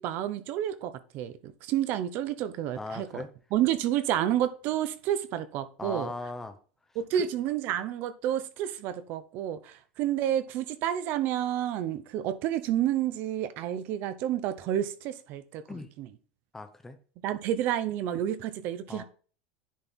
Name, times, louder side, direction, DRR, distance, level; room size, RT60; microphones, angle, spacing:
voice 1, 0.0-3.2 3.5-6.1 7.0-15.6 16.0-16.1 17.2-19.0, right 11 dB, 35° right, 0.8 m, -30 dB
voice 2, 2.8-3.3 5.8-6.6 7.1-7.3 15.7-15.9 16.5-17.0 18.9-19.0, left 3 dB, 5° left, 0.8 m, -38 dB
10.5 x 4.5 x 3.7 m
supercardioid pair, 175°, 6 cm